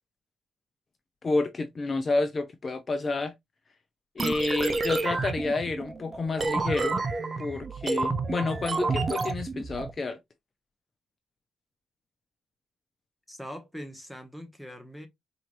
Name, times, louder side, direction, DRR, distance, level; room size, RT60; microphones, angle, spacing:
voice 1, 1.2-3.3 4.2-7.0 7.4-10.2, left 3 dB, 35° left, 0.6 m, -29 dB
sound 1, 4.2-9.9, right 3 dB, 35° right, 0.6 m, -30 dB
voice 2, 13.3-15.1, equal, ahead, 1.1 m, -42 dB
4.4 x 2.9 x 2.5 m
cardioid pair, 90°, 0 cm